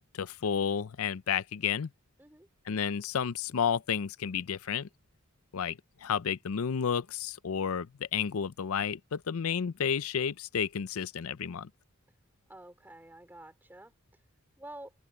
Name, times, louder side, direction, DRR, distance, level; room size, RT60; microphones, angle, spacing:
voice 1, 0.0-1.9 2.7-4.9 5.5-7.9 8.1-11.7, left 7 dB, 80° left, 0.5 m, -31 dB
voice 2, 12.5-13.9 14.6-14.9, right 1 dB, 10° right, 4.5 m, -49 dB
head